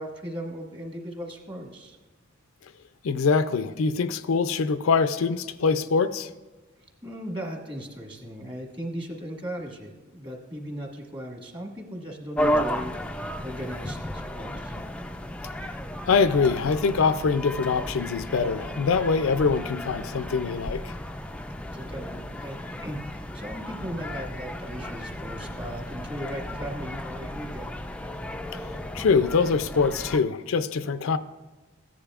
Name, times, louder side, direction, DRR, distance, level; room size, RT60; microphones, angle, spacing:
voice 1, 0.0-2.0 7.0-14.8 21.7-27.7, equal, 25° right, 0 dB, 1.6 m, -37 dB
voice 2, 3.0-6.3 16.1-20.9 28.5-31.2, left 5 dB, 70° left, 11 dB, 0.4 m, -24 dB
sound 1, 12.4-30.2, equal, 5° left, 0.3 m, -34 dB
15.0 x 10.0 x 2.4 m, 1.3 s
head